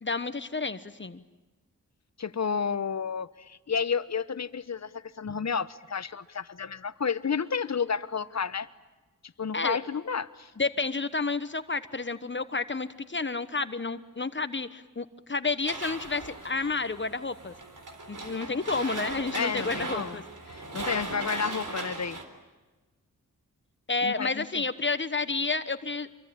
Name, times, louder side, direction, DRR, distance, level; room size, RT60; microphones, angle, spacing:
voice 1, 0.0-1.2 5.3-5.4 9.5-9.8 10.6-17.5 18.1-20.2 23.9-26.1, left 3 dB, 35° left, 12 dB, 1.2 m, -30 dB
voice 2, 2.2-8.7 9.4-10.5 19.3-20.2 20.5-22.2 24.0-24.5, left 6 dB, 55° left, 15 dB, 1.1 m, -31 dB
sound 1, 15.7-22.2, right 3 dB, 65° right, 3.9 m, -38 dB
26.5 x 23.5 x 8.9 m, 1.2 s
cardioid pair, 65°, 33 cm